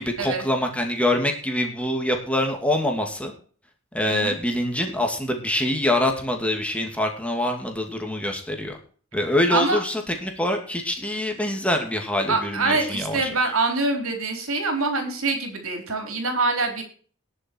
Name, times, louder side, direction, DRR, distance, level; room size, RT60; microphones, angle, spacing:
voice 1, 0.0-3.3 3.9-8.8 9.1-13.3, left 1 dB, 5° left, 2 dB, 2.4 m, -25 dB
voice 2, 9.5-9.8 12.3-16.8, right 3 dB, 75° right, 4 dB, 4.1 m, -25 dB
19.5 x 7.0 x 4.6 m, 0.43 s
head